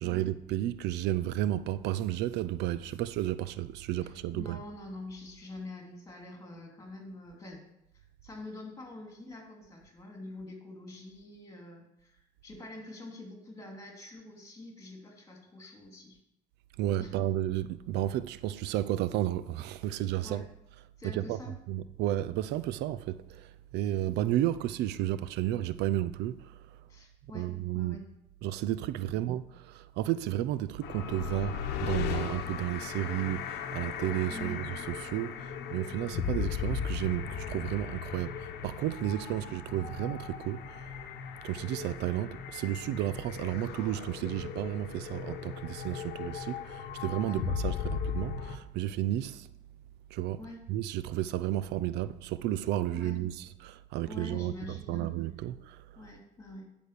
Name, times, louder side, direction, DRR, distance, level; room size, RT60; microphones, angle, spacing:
voice 1, 0.0-4.6 16.8-20.4 21.0-21.4 21.7-26.4 27.3-28.0 28.4-40.6 41.4-49.5 50.1-50.4 50.7-55.8, right 13 dB, 85° right, 0.5 m, -32 dB
voice 2, 4.0-7.6 7.9-16.2 17.0-17.2 20.2-20.4 21.0-21.6 26.9-28.0 29.0-29.2 34.3-34.6 47.2-47.4 50.4-50.6 52.9-53.2 54.1-55.1 56.0-56.7, left 2 dB, 20° left, 3.0 m, -46 dB
sound 1, 30.8-48.6, left 8 dB, 80° left, 0.9 m, -37 dB
10.0 x 5.0 x 6.8 m
cardioid pair, 110°, 17 cm